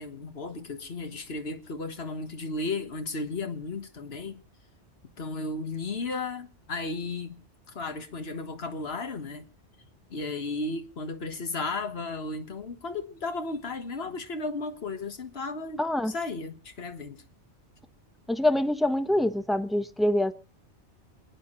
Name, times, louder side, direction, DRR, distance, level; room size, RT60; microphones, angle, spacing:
voice 1, 0.0-4.4 5.2-7.4 7.7-9.5 10.1-17.2, left 3 dB, 60° left, 1.7 m, -34 dB
voice 2, 15.8-16.1 18.3-20.3, left 1 dB, ahead, 0.7 m, -25 dB
27.5 x 9.5 x 3.9 m
omnidirectional pair, 1.2 m